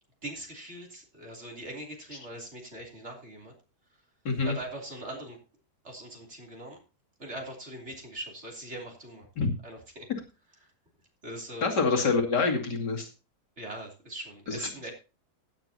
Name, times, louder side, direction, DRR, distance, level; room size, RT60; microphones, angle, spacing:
voice 1, 0.2-3.5 4.4-5.4 5.8-6.8 7.2-9.3 9.6-10.1 10.6-10.7 11.2-11.7 13.6-14.9, right 1 dB, 40° right, 1 dB, 3.4 m, -41 dB
voice 2, 11.6-13.1 14.5-14.7, left 4 dB, 75° left, 1 dB, 3.0 m, -26 dB
16.0 x 9.0 x 2.8 m, 0.31 s
omnidirectional pair, 1.9 m